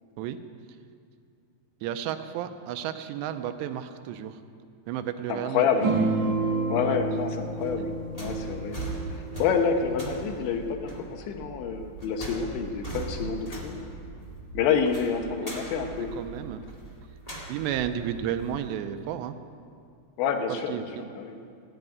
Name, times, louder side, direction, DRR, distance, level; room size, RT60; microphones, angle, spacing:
voice 1, 1.8-4.4 4.9-5.8 6.8-7.0 15.4-15.5 16.0-16.6 17.5-19.4 20.5-21.1, right 10 dB, 85° right, 10 dB, 2.8 m, -32 dB
voice 2, 5.3-5.9 6.7-8.8 9.4-13.8 14.6-16.1 20.2-20.8 21.2-21.4, left 6 dB, 85° left, 5 dB, 3.4 m, -28 dB
sound 1, 5.8-10.7, right 3 dB, 45° right, 1.4 m, -30 dB
sound 2, 6.8-18.8, right 2 dB, 65° left, 0.3 m, -40 dB
15.5 x 9.2 x 9.3 m, 2.3 s
omnidirectional pair, 5.1 m